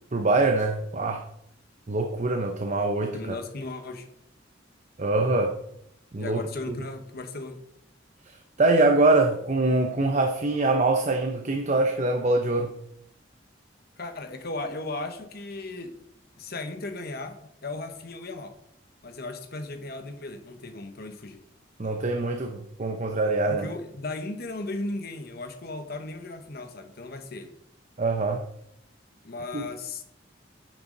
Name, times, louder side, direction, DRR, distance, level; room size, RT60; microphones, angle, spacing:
voice 1, 0.1-1.2 1.9-3.3 5.0-5.6 6.1-6.4 6.7-6.8 8.3-12.7 21.8-23.7 28.0-28.4 29.5-29.6, right 2 dB, 40° right, 4 dB, 0.7 m, -24 dB
voice 2, 3.1-4.1 6.2-7.6 14.0-16.0 16.4-18.5 19.0-21.4 23.5-27.5 29.2-30.0, left 2 dB, 55° left, 7 dB, 1.1 m, -36 dB
10.0 x 6.9 x 3.9 m, 0.74 s
head